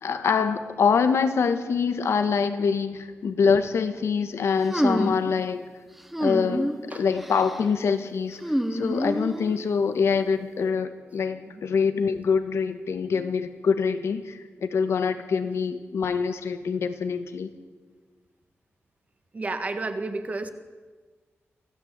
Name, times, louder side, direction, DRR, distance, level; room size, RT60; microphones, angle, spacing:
voice 1, 0.0-5.6 6.2-8.4 8.7-17.5, left 5 dB, 80° left, 9 dB, 1.7 m, -25 dB
sound 1, 4.7-5.3 6.1-6.8 7.2-7.6 8.4-9.6, equal, 5° right, 1.3 m, -27 dB
voice 2, 19.3-20.5, right 3 dB, 30° right, 8 dB, 1.7 m, -31 dB
24.5 x 16.5 x 8.4 m, 1.4 s
wide cardioid pair, 170°, 5 cm